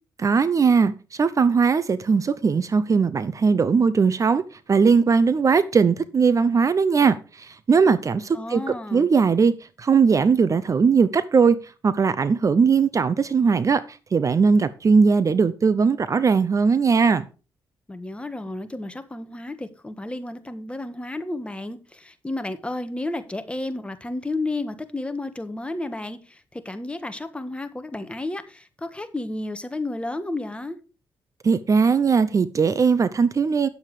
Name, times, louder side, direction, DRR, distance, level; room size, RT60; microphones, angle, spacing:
voice 1, 0.2-4.4 4.7-9.5 9.8-11.6 11.8-17.3 31.4-33.7, right 5 dB, 40° right, 0.6 m, -19 dB
voice 2, 8.3-9.1 17.9-30.8, left 2 dB, 15° left, 1.5 m, -32 dB
9.5 x 7.4 x 4.9 m
cardioid pair, 85°, 8 cm